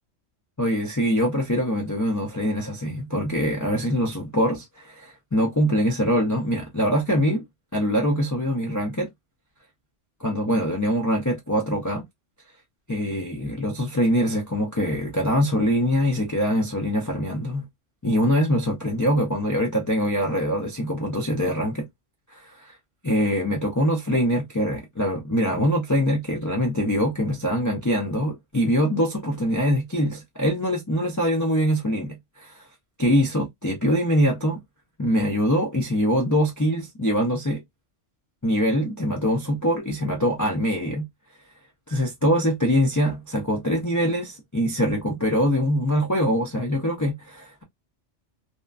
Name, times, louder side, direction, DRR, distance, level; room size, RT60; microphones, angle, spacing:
voice 1, 0.6-7.4 7.7-9.1 10.2-12.0 12.9-17.7 18.0-21.9 22.3-22.7 23.0-32.5 33.0-34.6 35.0-37.6 38.4-41.1 41.9-47.6, equal, 30° left, 0.3 m, -23 dB
2.8 x 2.2 x 2.3 m
omnidirectional pair, 1.3 m